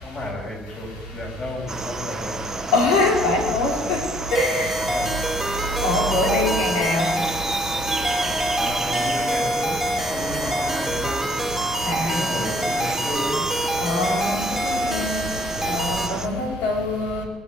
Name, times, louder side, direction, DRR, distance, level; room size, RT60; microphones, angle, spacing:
voice 1, 0.0-2.6 4.7-5.2 5.9-6.2 8.6-9.8 10.1-11.3 12.0-13.4 16.1-16.4, left 1 dB, 35° left, -1 dB, 6.7 m, -33 dB
sound 1, 1.7-16.3, right 3 dB, 20° right, 1.1 m, -31 dB
voice 2, 2.7-4.0 4.3-4.8 5.8-7.1 11.9-12.4 13.8-15.3 15.7-17.2, left 2 dB, 85° left, 1 dB, 3.7 m, -23 dB
sound 2, 4.3-16.1, right 1 dB, ahead, 2.7 m, -26 dB
21.0 x 8.1 x 8.2 m, 1.4 s
supercardioid pair, 80°, 2 cm